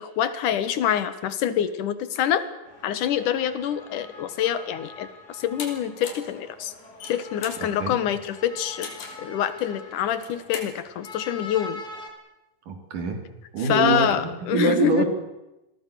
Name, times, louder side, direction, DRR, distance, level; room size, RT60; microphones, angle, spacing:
voice 1, 0.0-2.4 2.8-6.7 7.1-8.9 9.2-11.8 13.7-15.0, left 9 dB, 70° left, 13 dB, 2.8 m, -26 dB
sound 1, 2.6-12.1, left 3 dB, 30° left, 3.6 m, -44 dB
sound 2, 5.6-5.7 6.0-6.3 6.8-7.6 8.8-9.2 10.1-10.7, left 5 dB, 85° left, 5.0 m, -37 dB
voice 2, 7.6-8.0 12.7-13.2 13.5-15.1, right 4 dB, 65° right, 6 dB, 4.7 m, -25 dB
27.5 x 21.0 x 6.7 m, 0.97 s
omnidirectional pair, 4.0 m